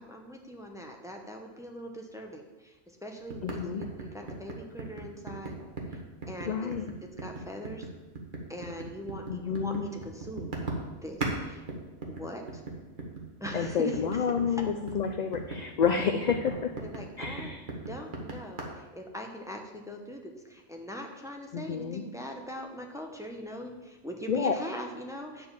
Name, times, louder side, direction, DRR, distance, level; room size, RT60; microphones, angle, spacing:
voice 1, 0.0-5.6 5.9-6.0 6.3-6.7 7.0-7.9 8.5-10.5 11.0-11.6 12.1-12.6 13.4-14.6 16.8-17.5 17.9-25.5, equal, 5° right, 2 dB, 0.8 m, -41 dB
sound 1, 3.3-11.4 11.7-18.6, right 2 dB, 45° right, 1.5 m, -38 dB
voice 2, 3.4-3.8 6.5-6.9 9.3-9.8 13.5-16.7 17.2-17.6 21.5-22.0 24.3-24.5, left 6 dB, 60° left, 6 dB, 0.4 m, -29 dB
9.4 x 4.3 x 7.2 m, 1.2 s
omnidirectional pair, 1.2 m